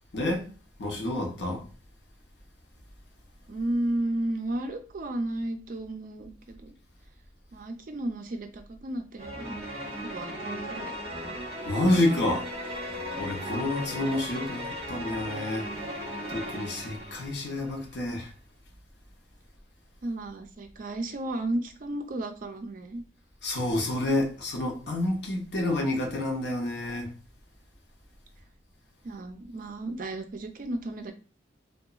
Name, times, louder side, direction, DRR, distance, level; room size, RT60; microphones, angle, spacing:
voice 1, 0.1-0.5 0.8-1.6 11.7-12.5 13.2-15.7 16.3-18.3 23.4-27.1, left 1 dB, 70° left, 0.7 m, -28 dB
voice 2, 3.5-6.7 7.5-9.6 10.0-10.9 20.0-23.0 29.0-31.1, right 1 dB, 50° right, 0.4 m, -33 dB
sound 1, 9.2-17.7, equal, 35° right, 0.9 m, -36 dB
2.8 x 2.2 x 2.3 m
head